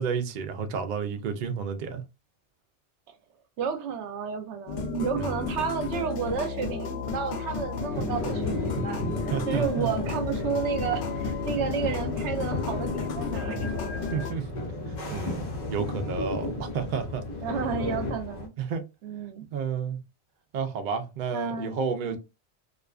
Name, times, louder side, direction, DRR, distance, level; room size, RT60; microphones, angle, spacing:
voice 1, 0.0-2.0 5.2-5.7 8.9-9.0 9.3-9.9 14.1-14.5 15.1-17.3 18.6-18.8 19.5-20.0 20.5-22.2, right 6 dB, 55° right, 0.5 m, -31 dB
voice 2, 3.6-9.1 9.5-13.7 17.4-18.5 19.0-19.4 21.3-21.8 22.0-22.2, right 6 dB, 80° right, 0.9 m, -31 dB
sound 1, 4.7-14.3, left 5 dB, 80° left, 0.9 m, -33 dB
sound 2, 7.9-18.5, left 2 dB, 45° left, 0.7 m, -34 dB
2.4 x 2.3 x 2.3 m
omnidirectional pair, 1.2 m